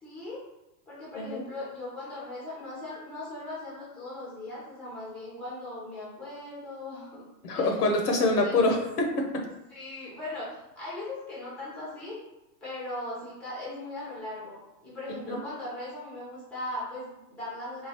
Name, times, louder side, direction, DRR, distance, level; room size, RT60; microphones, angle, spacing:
voice 1, 0.0-0.4 0.9-7.2 7.5-7.8 8.2-8.6 9.7-10.5 10.8-12.2 12.6-17.9, left 2 dB, ahead, -7 dB, 0.6 m, -39 dB
voice 2, 7.4-9.4 15.3-15.4, left 2 dB, 70° left, 2 dB, 0.9 m, -25 dB
3.8 x 2.3 x 2.9 m, 0.92 s
hypercardioid pair, 150°, 49 cm